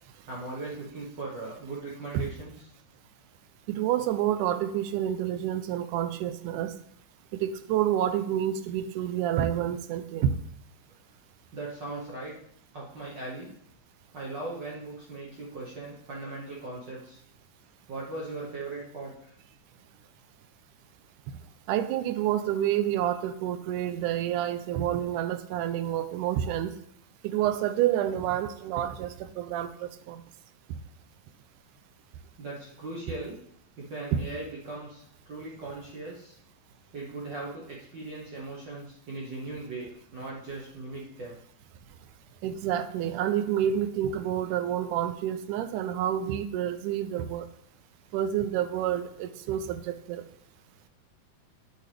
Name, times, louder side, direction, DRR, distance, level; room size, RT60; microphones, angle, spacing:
voice 1, 0.3-2.5 11.5-12.4 12.7-13.5 14.1-17.2 17.9-19.3 32.4-33.4 33.8-36.4 36.9-41.4, right 2 dB, 65° right, -4 dB, 1.1 m, -39 dB
voice 2, 3.7-6.7 7.3-10.3 21.7-26.7 27.2-30.2 34.1-34.2 42.4-47.5 48.1-50.2, right 11 dB, 85° right, 11 dB, 2.1 m, -28 dB
8.6 x 6.7 x 3.3 m, 0.70 s
omnidirectional pair, 3.5 m